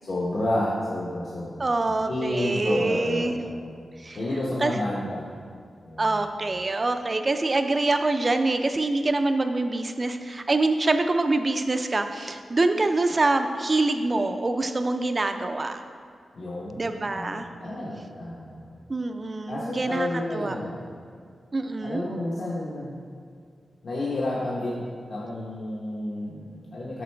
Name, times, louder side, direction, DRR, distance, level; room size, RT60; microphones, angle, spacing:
voice 1, 0.0-1.6 2.1-3.8 4.1-5.2 5.8-6.2 16.3-18.8 19.5-20.8 21.8-23.0 23.8-27.0, left 1 dB, 50° left, -7 dB, 0.9 m, -30 dB
voice 2, 1.6-3.4 4.0-4.2 4.6-4.8 6.0-15.8 16.8-17.5 18.9-20.6 21.5-22.1, right 2 dB, 30° right, 7 dB, 0.4 m, -25 dB
7.8 x 5.4 x 3.3 m, 2.2 s
wide cardioid pair, 145°, 0 cm